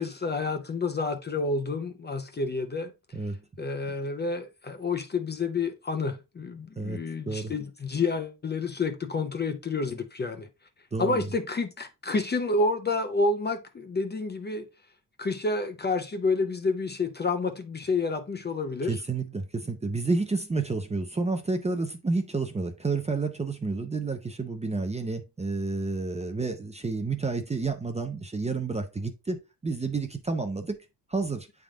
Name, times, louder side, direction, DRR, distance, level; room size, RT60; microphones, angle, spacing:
voice 1, 0.0-2.9 3.6-10.5 11.0-14.7 15.2-19.0, left 3 dB, 25° left, 0.6 m, -29 dB
voice 2, 6.8-7.5 10.9-11.3 18.9-30.8 31.1-31.5, right 3 dB, 15° right, 0.6 m, -30 dB
8.6 x 3.6 x 3.5 m
wide cardioid pair, 165°, 41 cm